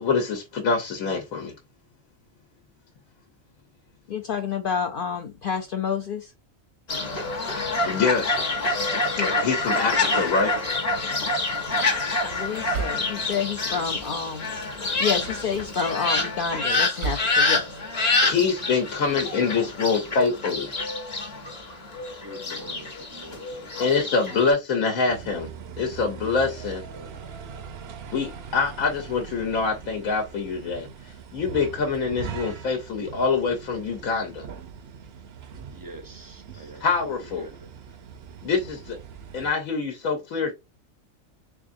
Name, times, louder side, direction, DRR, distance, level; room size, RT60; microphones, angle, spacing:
voice 1, 0.0-1.5 7.8-8.4 9.4-10.5 18.2-20.7 22.5-22.6 23.8-25.5 25.8-26.8 28.1-34.5 36.8-37.5 38.4-39.0 39.3-40.5, left 4 dB, 85° left, 1.2 m, -25 dB
voice 2, 4.1-6.3 9.2-9.3 12.2-14.5 15.0-17.7, left 6 dB, 65° left, 0.5 m, -29 dB
Fowl, 6.9-24.5, left 3 dB, 35° left, 0.8 m, -27 dB
sound 1, 10.9-11.4 12.3-13.5 13.9-14.2 14.9-15.9 16.3-17.4, right 5 dB, 80° right, 1.3 m, -36 dB
voice 3, 22.2-24.2 26.9-27.2 35.7-36.9 37.1-37.7, right 1 dB, 25° right, 0.4 m, -45 dB
sound 2, 25.1-39.5, right 6 dB, 60° right, 0.7 m, -41 dB
3.5 x 3.4 x 2.5 m
omnidirectional pair, 1.4 m